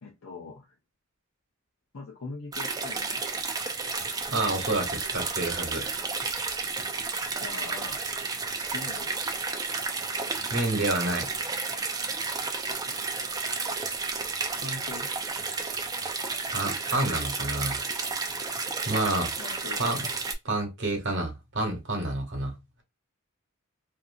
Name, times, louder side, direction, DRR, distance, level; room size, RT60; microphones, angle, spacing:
voice 1, 0.0-0.7 1.9-3.2 7.4-8.1 8.7-9.2 12.9-13.0 14.6-15.1 19.4-20.1, left 3 dB, 70° left, 0.6 m, -41 dB
sound 1, 2.5-20.3, right 4 dB, 15° right, 0.4 m, -32 dB
voice 2, 4.3-6.0 10.5-11.3 16.5-17.8 18.9-19.3 19.8-20.1 20.4-22.5, right 2 dB, 55° right, 1.1 m, -29 dB
2.7 x 2.5 x 2.5 m
head